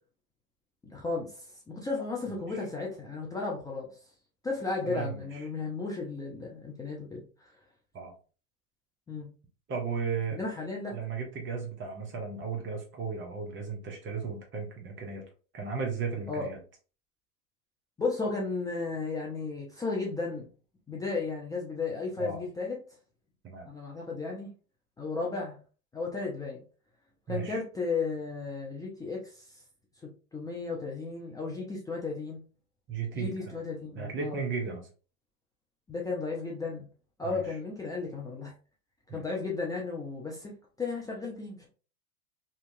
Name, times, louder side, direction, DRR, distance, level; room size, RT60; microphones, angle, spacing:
voice 1, 0.8-3.9 4.4-7.2 9.1-9.3 10.3-11.0 16.3-16.5 18.0-20.5 20.9-22.8 23.7-24.5 25.0-25.6 25.9-26.6 27.3-29.5 30.3-32.4 33.1-34.4 35.9-36.9 37.2-38.5 39.1-40.5 40.8-41.7, left 4 dB, 10° left, -3 dB, 0.4 m, -34 dB
voice 2, 4.8-5.4 7.9-8.1 9.7-10.4 10.9-15.2 15.5-16.6 22.2-22.4 23.4-23.7 27.3-27.6 32.9-33.5 33.9-34.9 37.2-37.6 39.1-39.2, right 5 dB, 25° right, 2 dB, 0.8 m, -35 dB
2.8 x 2.3 x 2.6 m, 0.36 s
hypercardioid pair, 100°, 43 cm